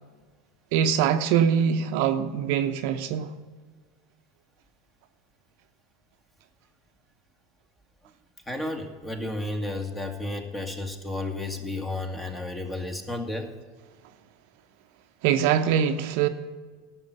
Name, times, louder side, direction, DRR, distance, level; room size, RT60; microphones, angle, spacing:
voice 1, 0.7-3.4 15.2-16.3, right 8 dB, 65° right, 0.7 m, -23 dB
voice 2, 8.5-13.5, left 2 dB, 15° left, 1.7 m, -32 dB
11.5 x 6.3 x 8.0 m
hypercardioid pair, 95°, 0 cm